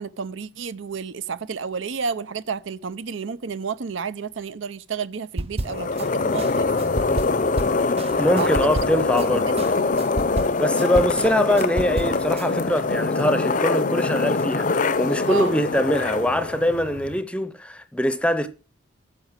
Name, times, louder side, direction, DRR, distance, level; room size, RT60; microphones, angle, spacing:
voice 1, 0.0-6.7 8.4-8.8 9.2-10.0 15.3-15.6, right 5 dB, 75° right, 0.6 m, -31 dB
sound 1, 5.4-6.1 6.4-9.3 9.6-12.5, right 1 dB, 30° right, 0.6 m, -31 dB
sound 2, 5.6-17.2, left 3 dB, 40° left, 0.6 m, -24 dB
voice 2, 8.2-9.7 10.6-18.5, equal, 5° left, 0.7 m, -23 dB
9.9 x 6.5 x 6.2 m
head